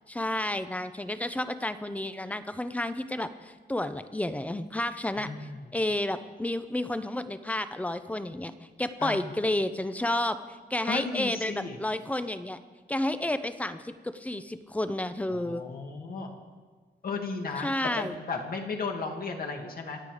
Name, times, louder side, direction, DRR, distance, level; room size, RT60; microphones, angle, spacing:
voice 1, 0.1-5.3 5.7-8.5 8.8-10.4 10.7-12.6 12.9-15.6 17.6-18.2, left 1 dB, 10° left, 11 dB, 0.7 m, -31 dB
voice 2, 5.2-5.6 9.0-9.3 10.9-11.8 15.3-16.3 17.0-20.0, left 4 dB, 55° left, 2 dB, 2.1 m, -35 dB
26.5 x 8.9 x 4.9 m, 1.4 s
wide cardioid pair, 145°, 17 cm